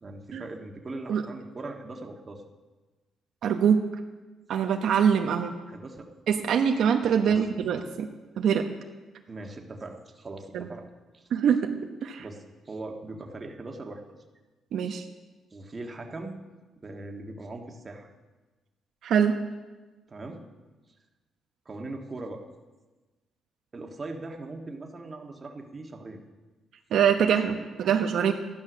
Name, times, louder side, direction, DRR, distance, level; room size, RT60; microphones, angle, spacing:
voice 1, 0.0-2.4 5.7-6.1 7.2-7.4 9.3-10.9 11.1-11.3 12.2-14.0 14.8-15.0 15.5-16.4 16.8-18.1 20.1-20.4 21.7-22.4 23.7-26.2, right 2 dB, 30° right, 2 dB, 1.6 m, -40 dB
voice 2, 3.4-3.8 4.5-5.5 6.3-8.1 8.4-8.6 10.5-10.7 11.3-11.7 12.0-12.2 14.7-15.0 19.0-19.4 26.9-28.3, right 7 dB, 70° right, 4 dB, 0.9 m, -23 dB
13.5 x 11.0 x 6.2 m, 1.2 s
cardioid pair, 105°, 0 cm